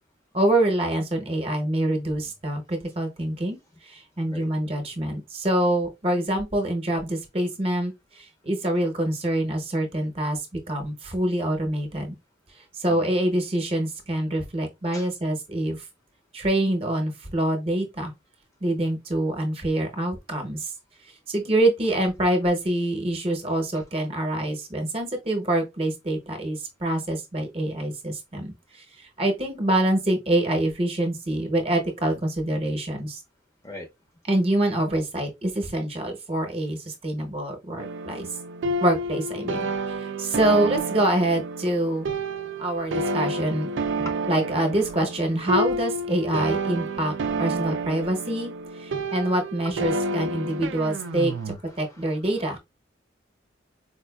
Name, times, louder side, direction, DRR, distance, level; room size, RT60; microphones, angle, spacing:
voice 1, 0.3-3.6 3.8-12.1 12.7-15.8 16.3-18.1 18.6-20.7 21.3-33.2 34.3-38.3 38.8-39.6 40.2-42.1 42.6-43.7 44.3-52.6, right 1 dB, 30° right, 0.8 m, -25 dB
sound 1, 37.8-51.6, right 2 dB, 80° right, 0.4 m, -30 dB
voice 2, 39.4-39.7 40.4-40.7 44.0-44.1 49.6-52.2, left 1 dB, 15° left, 0.6 m, -43 dB
4.3 x 2.4 x 2.3 m
head